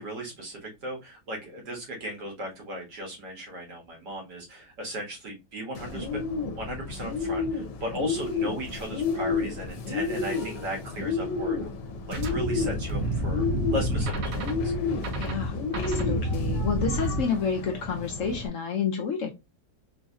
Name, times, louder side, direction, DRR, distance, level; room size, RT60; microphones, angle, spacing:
voice 1, 0.0-6.2 6.6-11.7 12.1-14.7, equal, 80° right, 1.9 m, -37 dB
Bird, 5.7-18.5, left 4 dB, 85° left, 1.3 m, -31 dB
sound 1, 12.1-17.2, right 1 dB, 60° right, 1.1 m, -29 dB
voice 2, 15.2-19.3, left 6 dB, 65° left, 0.8 m, -30 dB
3.9 x 2.7 x 2.3 m
omnidirectional pair, 1.8 m